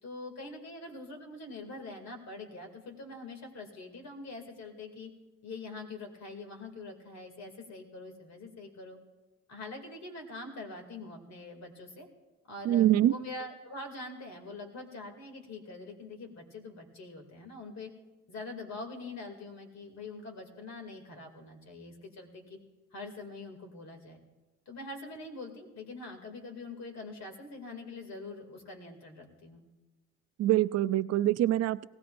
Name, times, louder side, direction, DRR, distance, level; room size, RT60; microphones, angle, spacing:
voice 1, 0.0-5.1 5.4-9.0 9.5-12.1 12.5-17.9 18.3-22.6 22.9-24.2 24.7-29.6, left 2 dB, 60° left, 3 dB, 2.6 m, -44 dB
voice 2, 12.6-13.1 30.4-31.8, right 13 dB, 55° right, 16 dB, 0.4 m, -24 dB
19.0 x 16.5 x 2.6 m, 1.1 s
cardioid pair, 90°, 30 cm